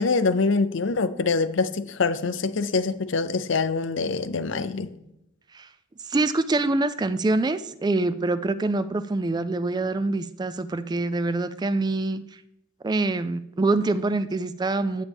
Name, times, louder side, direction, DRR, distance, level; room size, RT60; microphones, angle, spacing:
voice 1, 0.0-4.9, left 4 dB, 65° left, 0.6 m, -24 dB
voice 2, 6.0-12.4 12.8-15.0, right 2 dB, 20° right, 0.3 m, -25 dB
9.8 x 8.7 x 3.5 m
head